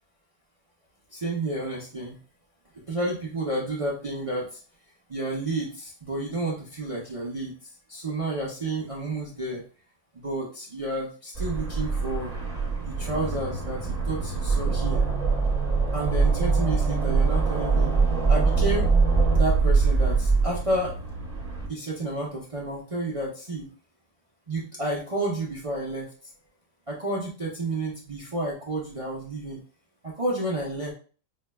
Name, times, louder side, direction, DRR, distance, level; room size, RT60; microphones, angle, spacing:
voice 1, 1.1-2.2 2.9-4.6 5.1-7.5 7.9-9.6 10.1-12.3 12.9-15.0 15.9-17.9 18.3-18.9 19.3-20.9 21.7-23.7 24.5-26.1 26.9-29.6 30.0-30.9, right 2 dB, 50° right, -5 dB, 0.4 m, -30 dB
sound 1, 11.3-21.7, right 4 dB, 25° right, 0.9 m, -23 dB
5.6 x 2.2 x 2.2 m, 0.39 s
omnidirectional pair, 1.8 m